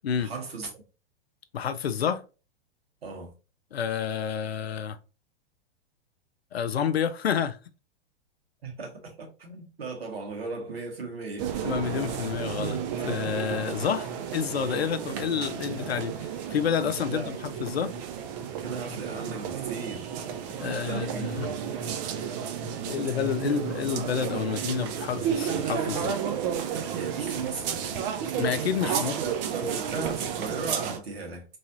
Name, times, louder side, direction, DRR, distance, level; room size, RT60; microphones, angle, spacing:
voice 1, 0.2-0.8 3.0-3.3 8.6-11.5 17.1-17.5 18.6-20.2 20.7-21.6 26.9-28.0 28.8-31.5, right 4 dB, 75° right, 1.5 m, -37 dB
voice 2, 1.5-2.2 3.7-5.0 6.5-7.6 11.6-17.9 20.6-21.5 22.9-26.2 28.4-29.2, left 8 dB, 85° left, 0.5 m, -29 dB
sound 1, 11.4-31.0, right 8 dB, 45° right, 0.6 m, -32 dB
3.1 x 2.7 x 2.7 m
hypercardioid pair, 105°, 30 cm